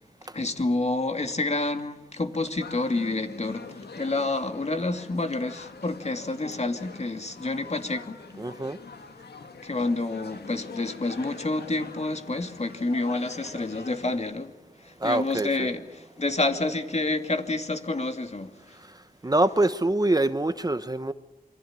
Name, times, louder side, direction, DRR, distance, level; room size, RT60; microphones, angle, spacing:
voice 1, 0.3-8.2 9.6-14.5 14.8-18.8, left 2 dB, 45° left, 2.5 m, -29 dB
sound 1, 2.6-14.2, left 4 dB, 85° left, 2.0 m, -44 dB
voice 2, 8.4-8.8 15.0-15.7 19.2-21.1, right 2 dB, 25° right, 1.0 m, -24 dB
27.5 x 24.0 x 8.9 m
wide cardioid pair, 70°, 16 cm